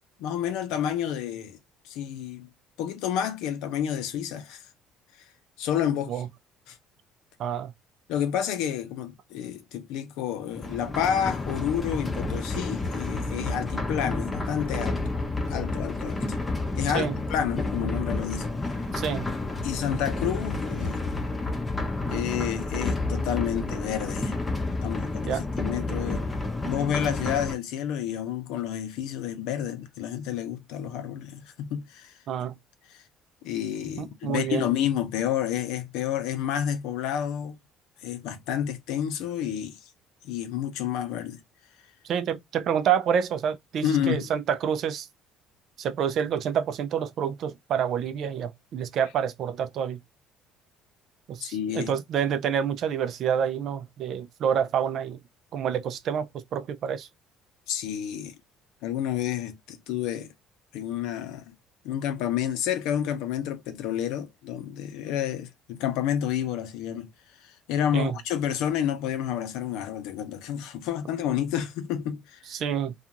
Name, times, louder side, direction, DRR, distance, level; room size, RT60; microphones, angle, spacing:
voice 1, 0.2-1.6 1.8-2.5 2.8-4.6 5.6-6.2 6.7-6.8 8.1-15.0 15.5-16.4 16.7-18.5 19.6-21.0 22.1-24.4 24.8-26.2 26.6-32.1 32.9-33.0 33.4-37.6 38.0-39.8 40.2-41.4 43.8-44.3 51.4-51.9 57.7-58.4 58.8-60.3 60.7-61.4 61.8-67.1 67.4-72.4, left 9 dB, 85° left, 0.7 m, -30 dB
voice 2, 7.4-7.7 16.9-17.1 18.9-19.3 25.3-25.4 32.3-32.5 34.0-34.6 42.0-45.1 45.8-50.0 51.3-55.2 55.5-57.1 67.9-68.1 72.5-72.9, right 8 dB, 55° right, 0.4 m, -28 dB
sound 1, 10.5-27.5, left 2 dB, 15° left, 0.6 m, -30 dB
2.4 x 2.4 x 2.8 m
cardioid pair, 130°, 0 cm